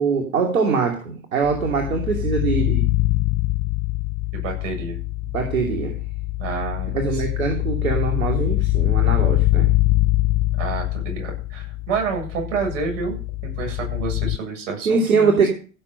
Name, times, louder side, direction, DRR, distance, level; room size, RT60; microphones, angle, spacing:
voice 1, 0.0-3.0 5.3-6.0 6.9-9.7 14.8-15.5, right 5 dB, 85° right, 1 dB, 2.8 m, -22 dB
sound 1, 1.4-14.4, left 19 dB, 30° left, 0.5 m, -23 dB
voice 2, 4.3-5.0 6.4-7.2 10.6-13.2 13.4-15.5, right 5 dB, 65° right, 2 dB, 7.9 m, -29 dB
16.0 x 7.0 x 6.7 m, 0.39 s
hypercardioid pair, 95°, 41 cm